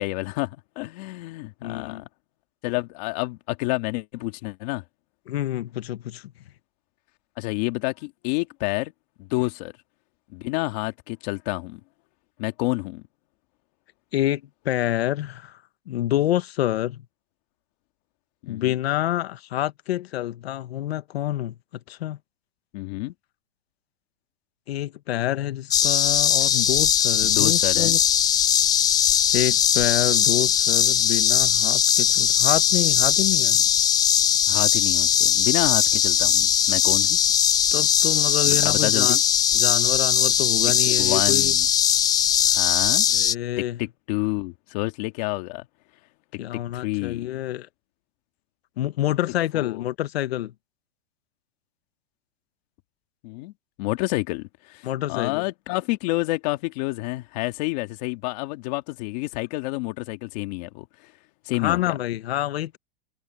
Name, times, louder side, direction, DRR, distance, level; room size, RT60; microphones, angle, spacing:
voice 1, 0.0-2.0 2.6-4.8 7.4-8.9 9.2-9.7 10.3-11.8 12.4-13.0 18.4-18.8 22.7-23.1 27.4-28.0 34.5-37.2 38.4-39.2 40.9-41.7 42.5-43.1 43.6-45.7 46.5-47.3 49.5-49.8 53.2-53.5 53.8-61.1 61.5-61.9, left 22 dB, 40° left, 2.0 m, -29 dB
voice 2, 1.6-2.0 5.3-6.3 14.1-15.6 15.9-17.0 18.5-21.5 21.9-22.2 24.7-28.0 29.3-33.6 37.7-39.2 39.5-41.5 42.3-42.6 43.1-43.8 46.4-47.7 48.8-50.5 54.8-55.4 61.6-62.8, left 13 dB, 75° left, 1.5 m, -27 dB
sound 1, 25.7-43.3, left 9 dB, 10° left, 0.7 m, -20 dB
supercardioid pair, 165°, 31 cm